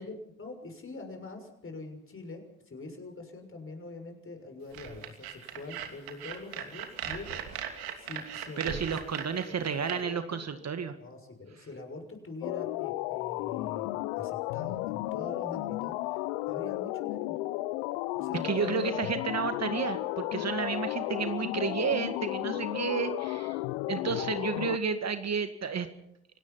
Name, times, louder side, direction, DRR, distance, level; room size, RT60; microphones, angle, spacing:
voice 1, 0.0-9.0 9.4-10.4 11.0-17.4 18.1-19.0, left 3 dB, 35° left, 5 dB, 6.5 m, -44 dB
sound 1, 4.7-9.9, right 9 dB, 70° right, 2.9 m, -39 dB
voice 2, 8.6-11.0 18.4-23.6 23.9-25.9, right 6 dB, 45° right, 9 dB, 2.0 m, -31 dB
sound 2, 12.4-24.8, left 18 dB, 85° left, 0.7 m, -33 dB
29.0 x 17.5 x 5.8 m, 0.77 s
hypercardioid pair, 55°, 37 cm